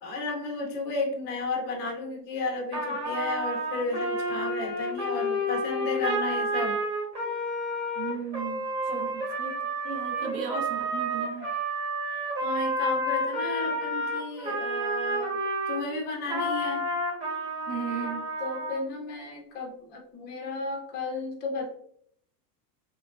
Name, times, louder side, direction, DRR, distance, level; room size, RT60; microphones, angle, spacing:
voice 1, 0.0-6.8 8.9-9.1 12.4-15.4 15.7-16.9 18.4-21.7, left 3 dB, 25° left, 1 dB, 0.5 m, -33 dB
Trumpet, 2.7-15.8 16.3-18.8, right 1 dB, 25° right, 1.1 m, -30 dB
voice 2, 8.0-8.7 8.9-11.5 17.7-18.3, right 6 dB, 45° right, 3 dB, 0.5 m, -36 dB
2.9 x 2.2 x 2.3 m, 0.66 s
supercardioid pair, 135°, 46 cm